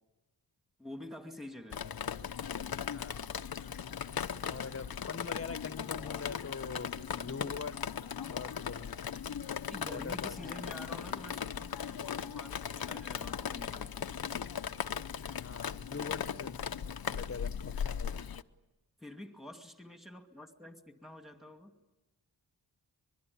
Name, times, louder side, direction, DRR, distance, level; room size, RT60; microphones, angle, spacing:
voice 1, 0.8-1.9 9.6-14.3 19.0-21.8, left 1 dB, ahead, 5 dB, 2.4 m, -48 dB
Drip, 1.7-18.4, left 8 dB, 55° left, 0.8 m, -38 dB
voice 2, 4.4-7.8 8.2-9.0 9.9-10.6 15.4-16.6 17.1-18.2, left 5 dB, 35° left, 12 dB, 1.2 m, -43 dB
24.5 x 23.0 x 9.8 m, 1.1 s
wide cardioid pair, 105°, 43 cm